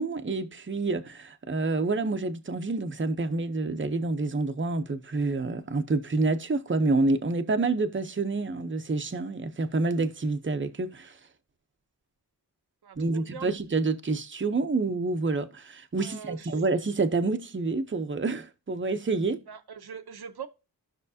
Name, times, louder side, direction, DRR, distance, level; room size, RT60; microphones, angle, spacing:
voice 1, 0.0-11.1 13.0-19.4, right 3 dB, 30° right, 0.8 m, -28 dB
voice 2, 12.8-13.5 16.0-16.6 19.5-20.5, right 7 dB, 70° right, 0.9 m, -42 dB
14.5 x 5.9 x 2.8 m
wide cardioid pair, 65°, 39 cm